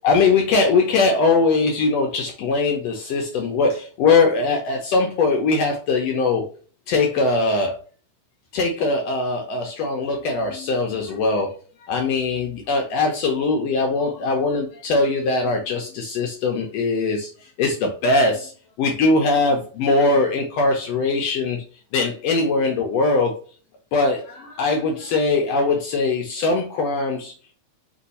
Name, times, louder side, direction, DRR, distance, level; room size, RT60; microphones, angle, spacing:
voice 1, 0.0-6.4 6.9-7.7 8.5-11.6 11.9-17.3 17.6-18.5 18.8-21.6 21.9-23.3 23.9-27.3, left 3 dB, 75° left, 2 dB, 1.6 m, -21 dB
4.5 x 2.6 x 4.0 m, 0.40 s
omnidirectional pair, 3.3 m